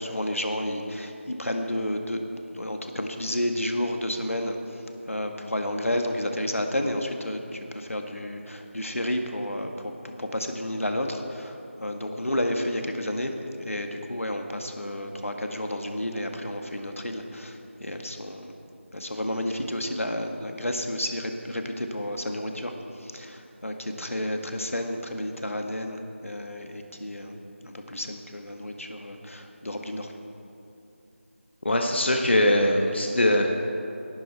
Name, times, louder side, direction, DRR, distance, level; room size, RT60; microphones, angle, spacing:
voice 1, 0.0-2.2 2.5-4.5 5.1-9.9 10.2-18.5 18.9-22.7 23.0-27.3 27.6-30.1, left 1 dB, 85° left, 4 dB, 1.6 m, -31 dB
voice 2, 31.6-33.5, left 1 dB, 55° left, 2 dB, 1.3 m, -21 dB
17.5 x 10.5 x 4.5 m, 2.8 s
figure-of-eight pair, 170°, 7 cm